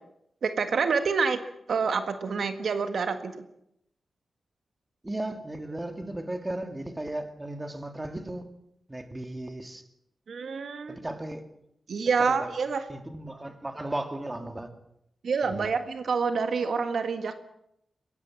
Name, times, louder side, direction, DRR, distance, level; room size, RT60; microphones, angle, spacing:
voice 1, 0.4-1.4 1.7-3.4 10.3-11.0 11.9-12.9 15.2-17.3, right 5 dB, 75° right, 1.7 m, -27 dB
voice 2, 5.0-8.5 8.9-9.8 10.9-11.4 12.3-12.5 12.9-14.7 15.4-15.7, right 1 dB, 20° right, 2.5 m, -35 dB
22.0 x 17.0 x 7.3 m
wide cardioid pair, 95°, 0 cm